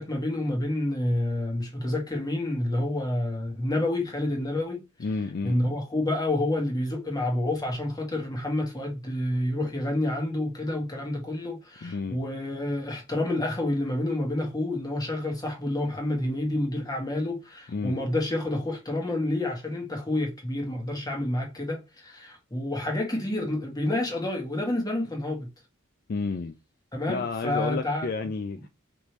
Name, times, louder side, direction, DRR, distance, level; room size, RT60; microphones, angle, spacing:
voice 1, 0.0-4.8 5.4-25.5 26.9-28.1, left 1 dB, 20° left, 1.6 m, -29 dB
voice 2, 5.0-5.6 11.8-12.2 17.7-18.0 26.1-26.6 27.1-28.7, left 4 dB, 45° left, 0.4 m, -31 dB
5.2 x 3.3 x 3.0 m
head